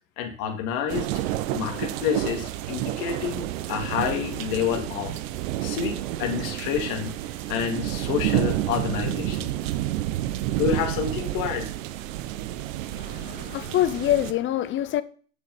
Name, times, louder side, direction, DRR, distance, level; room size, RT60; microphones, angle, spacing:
voice 1, 0.2-1.1 1.5-5.2 5.6-7.1 7.5-9.4 10.5-11.7, left 8 dB, 50° left, 2.4 m, -28 dB
sound 1, 0.9-14.3, right 14 dB, 60° right, 0.9 m, -30 dB
voice 2, 12.9-15.0, left 12 dB, 25° left, 0.7 m, -25 dB
8.0 x 6.7 x 5.4 m
hypercardioid pair, 110°, 44 cm